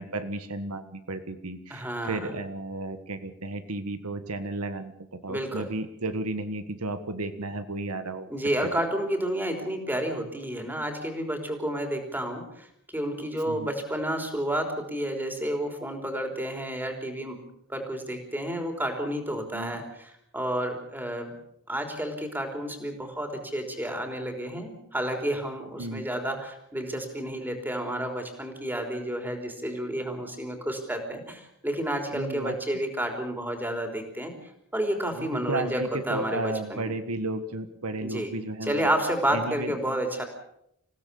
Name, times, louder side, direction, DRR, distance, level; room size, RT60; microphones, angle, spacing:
voice 1, 0.0-8.3 8.6-8.7 13.5-13.7 19.5-19.8 25.8-26.0 32.1-32.6 35.1-38.9 39.3-39.7, right 2 dB, 90° right, 10 dB, 1.6 m, -33 dB
voice 2, 1.7-2.3 5.3-5.7 8.3-12.7 12.9-17.4 17.7-21.3 21.7-36.9 38.0-38.3 38.6-40.2, right 1 dB, 10° right, 4 dB, 3.7 m, -30 dB
27.0 x 16.5 x 7.0 m, 0.76 s
head